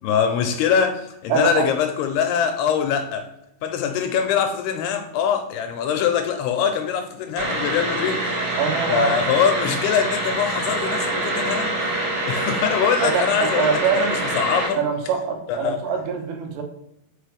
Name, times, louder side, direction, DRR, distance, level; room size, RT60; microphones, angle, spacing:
voice 1, 0.0-3.3 3.6-8.4 8.9-14.8 15.5-15.8, left 7 dB, 85° left, 2.5 m, -23 dB
voice 2, 1.3-1.7 8.6-9.1 13.0-14.2 14.8-16.6, right 6 dB, 75° right, 3.2 m, -24 dB
sound 1, 7.4-14.7, right 1 dB, 60° right, 2.8 m, -25 dB
7.9 x 5.4 x 3.4 m
omnidirectional pair, 4.9 m